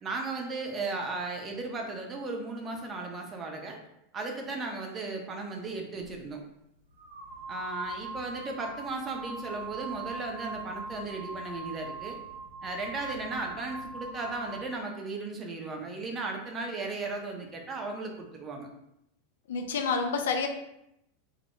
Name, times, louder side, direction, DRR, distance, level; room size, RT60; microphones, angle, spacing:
voice 1, 0.0-3.8 4.1-6.4 7.5-12.2 12.6-18.7, right 3 dB, 25° right, 1 dB, 0.5 m, -36 dB
sound 1, 6.0-6.2 7.0-14.7, right 3 dB, 80° right, 0.7 m, -41 dB
voice 2, 19.5-20.5, left 5 dB, 65° left, 5 dB, 0.3 m, -28 dB
2.1 x 2.0 x 3.0 m, 0.81 s
figure-of-eight pair, 85°, 0 cm